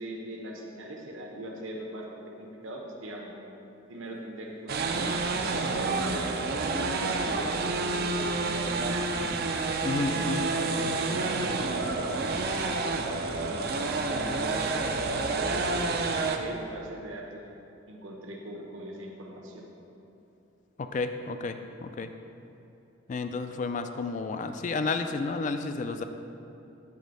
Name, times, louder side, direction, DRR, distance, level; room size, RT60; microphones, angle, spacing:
voice 1, 0.0-3.3 3.9-9.2 9.9-17.4 17.9-19.7, right 1 dB, 70° right, -1 dB, 1.0 m, -40 dB
sound 1, 4.7-16.4, right 3 dB, 50° right, 0.4 m, -29 dB
voice 2, 9.8-10.5 20.8-22.1 23.1-26.0, left 3 dB, 35° left, 8 dB, 0.3 m, -31 dB
8.3 x 3.5 x 5.2 m, 2.9 s
head